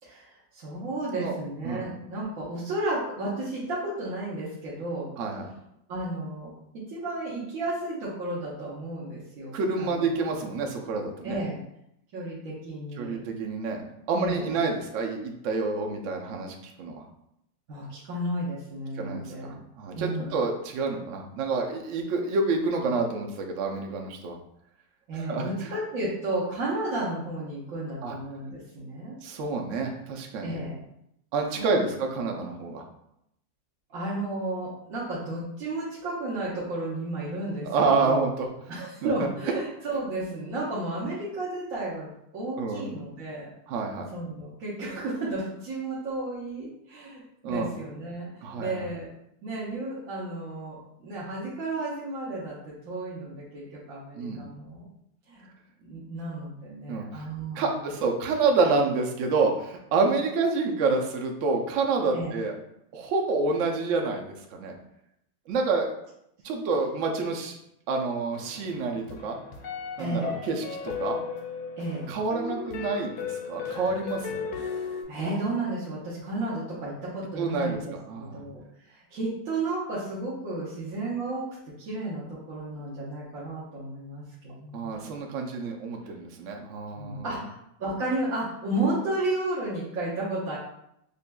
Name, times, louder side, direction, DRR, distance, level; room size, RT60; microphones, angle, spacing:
voice 1, 0.0-5.1 5.4-5.5 5.9-10.2 11.2-11.6 12.1-13.2 14.1-14.6 17.7-19.6 19.9-20.4 25.1-29.2 30.4-30.8 31.6-31.8 33.9-37.7 38.0-38.3 38.7-43.5 44.1-49.1 49.4-54.8 55.3-55.5 55.8-57.9 62.1-62.3 70.0-70.4 71.8-72.1 75.1-85.1 87.0-90.6, right 2 dB, 55° right, -8 dB, 1.1 m, -33 dB
voice 2, 5.2-5.5 9.5-11.4 13.0-17.0 19.0-24.4 25.3-25.7 28.0-28.2 29.2-30.6 31.3-32.8 37.6-38.5 39.0-39.3 42.6-42.8 43.7-44.1 47.4-47.7 48.4-48.8 54.2-54.4 56.9-57.2 57.6-62.5 62.9-64.7 65.5-65.9 66.4-67.6 67.9-69.4 70.0-71.2 72.1-74.5 77.4-78.4 84.7-87.2, right 4 dB, 75° right, 2 dB, 0.7 m, -28 dB
sound 1, 68.3-75.0, left 6 dB, 70° left, 1.0 m, -36 dB
5.2 x 2.5 x 2.2 m, 0.78 s
omnidirectional pair, 2.0 m